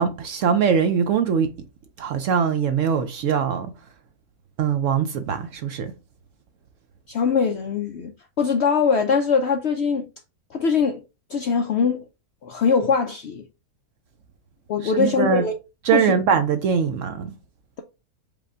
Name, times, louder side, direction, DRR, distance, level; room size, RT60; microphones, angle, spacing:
voice 1, 0.0-1.5 2.0-3.7 4.6-5.9 14.8-15.5 15.8-17.3, right 7 dB, 70° right, 0.8 m, -22 dB
voice 2, 7.1-8.1 8.4-10.1 10.5-11.0 11.3-12.0 12.4-13.5 14.7-15.5 15.9-16.1, left 5 dB, 70° left, 0.6 m, -22 dB
5.0 x 2.2 x 4.8 m
omnidirectional pair, 1.7 m